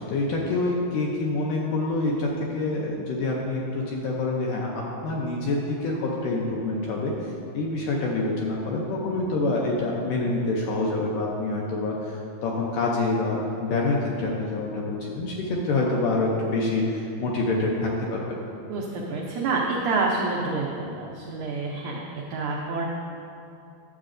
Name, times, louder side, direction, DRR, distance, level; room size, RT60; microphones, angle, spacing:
voice 1, 0.0-18.4, left 2 dB, 80° left, -2 dB, 1.9 m, -26 dB
voice 2, 18.7-22.8, right 3 dB, 85° right, -3 dB, 1.7 m, -28 dB
11.5 x 7.3 x 2.5 m, 2.6 s
omnidirectional pair, 4.4 m